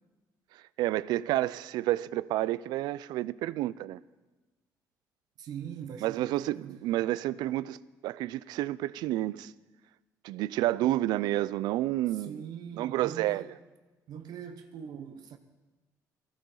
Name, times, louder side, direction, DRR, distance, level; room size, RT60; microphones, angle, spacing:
voice 1, 0.8-4.0 6.0-7.8 8.0-9.5 10.2-12.4 12.7-13.4, right 15 dB, 90° right, 0.4 m, -30 dB
voice 2, 5.4-6.9 12.1-13.6 14.1-15.4, right 8 dB, 70° right, 1.0 m, -42 dB
19.0 x 15.5 x 3.9 m
cardioid pair, 120°, 7 cm